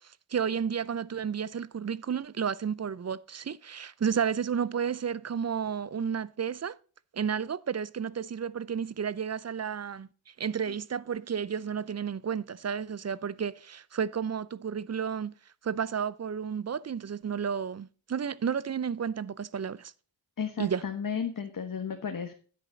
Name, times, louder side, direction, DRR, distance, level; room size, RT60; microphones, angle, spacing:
voice 1, 0.0-6.8 7.1-15.3 15.6-19.9 20.6-20.8, right 7 dB, 35° right, 0.6 m, -32 dB
voice 2, 20.4-22.3, left 7 dB, 45° left, 1.5 m, -33 dB
10.0 x 8.4 x 4.0 m
cardioid pair, 65°, 48 cm